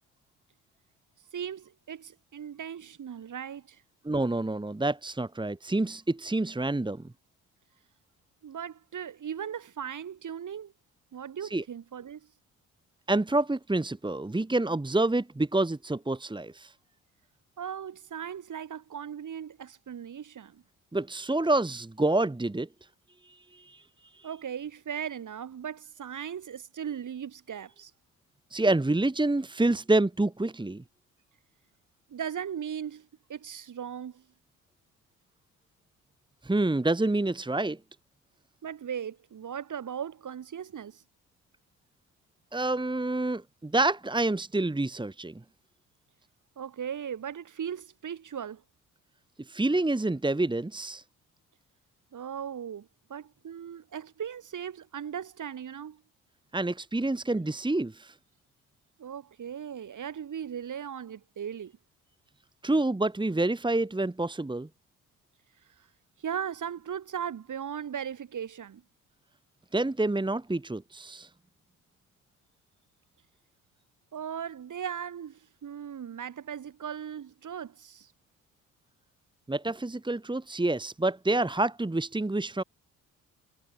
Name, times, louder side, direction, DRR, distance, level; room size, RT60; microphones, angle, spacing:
voice 1, 1.3-3.8 8.4-10.7 11.1-12.3 17.6-20.6 24.2-27.9 32.1-34.2 38.6-41.0 46.6-48.6 52.1-56.0 57.3-57.4 59.0-61.8 66.2-68.8 74.1-78.1, right 8 dB, 45° right, 7.6 m, -38 dB
voice 2, 4.0-7.0 11.5-11.6 13.1-16.7 20.9-22.7 23.2-23.8 24.1-24.3 28.5-30.8 36.4-37.8 42.5-45.3 49.5-51.0 56.5-58.1 62.6-64.7 69.7-71.3 79.5-82.6, right 2 dB, 10° right, 2.4 m, -28 dB
figure-of-eight pair, 45°, 41 cm